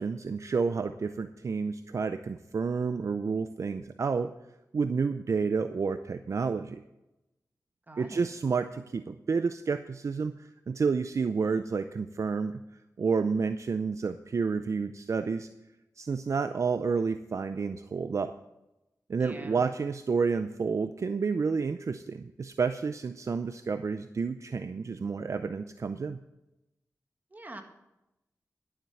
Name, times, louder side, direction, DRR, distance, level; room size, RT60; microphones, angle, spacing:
voice 1, 0.0-4.3 4.7-6.8 8.0-12.6 13.0-15.5 16.0-18.3 19.1-26.2, right 5 dB, 55° right, 10 dB, 0.5 m, -30 dB
voice 2, 7.9-8.3 19.2-19.6 27.3-27.6, right 1 dB, 30° right, 5 dB, 1.7 m, -45 dB
12.0 x 7.4 x 6.9 m, 0.94 s
wide cardioid pair, 80°, 6 cm